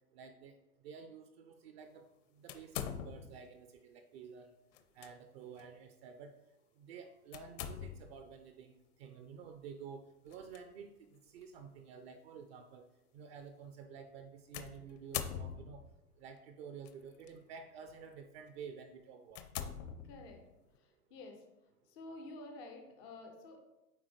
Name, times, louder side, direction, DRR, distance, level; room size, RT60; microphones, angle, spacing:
voice 1, 0.1-0.6 0.8-2.0 2.3-4.5 5.0-6.3 6.8-12.9 13.1-15.8 16.2-19.4, right 6 dB, 45° right, 7 dB, 0.5 m, -51 dB
sound 1, 2.5-3.5 4.7-5.1 5.6-5.7 7.3-8.2 10.3-10.6 11.4-11.5 14.5-16.0 16.9-17.3 17.9-18.1 18.6-18.7 19.3-20.5, left 9 dB, 55° left, 0.7 m, -43 dB
voice 2, 20.0-20.4 20.8-21.4 21.9-23.6, left 2 dB, 15° left, 4 dB, 0.3 m, -50 dB
9.1 x 3.6 x 3.2 m, 0.95 s
hypercardioid pair, 115°, 46 cm